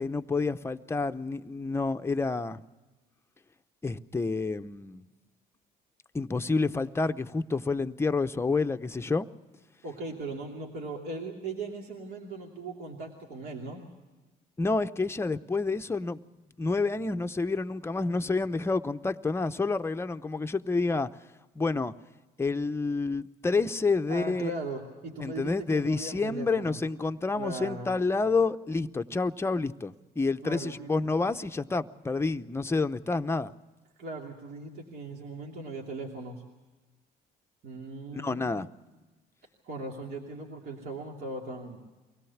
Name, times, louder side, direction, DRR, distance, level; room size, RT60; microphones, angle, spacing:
voice 1, 0.0-2.6 3.8-5.0 6.1-9.3 14.6-16.2 16.6-21.1 21.6-21.9 22.4-24.5 25.2-33.5 38.1-38.7, left 3 dB, 15° left, 8 dB, 0.7 m, -29 dB
voice 2, 9.8-13.8 24.1-26.8 27.4-27.9 30.4-30.9 34.0-36.4 37.6-38.6 39.6-41.8, right 2 dB, 65° right, -1 dB, 2.9 m, -38 dB
24.0 x 17.5 x 7.2 m, 1.2 s
cardioid pair, 110°, 17 cm